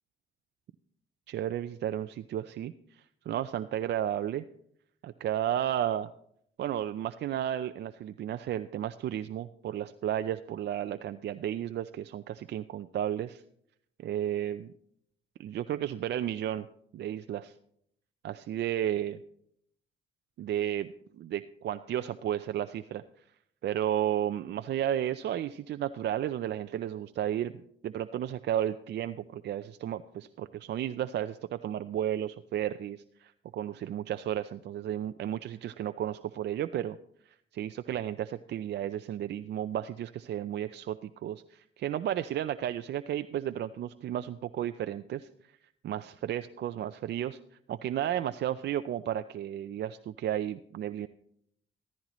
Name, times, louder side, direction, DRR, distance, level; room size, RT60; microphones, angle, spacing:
voice 1, 1.3-4.4 5.0-6.1 6.6-13.4 14.0-14.7 15.4-16.7 16.9-17.5 18.2-19.2 20.4-23.0 23.6-27.5 27.8-37.0 37.3-45.5 45.8-47.4 47.7-51.1, right 11 dB, 60° right, 10 dB, 0.5 m, -33 dB
14.5 x 14.5 x 3.0 m, 0.70 s
cardioid pair, 90°, 20 cm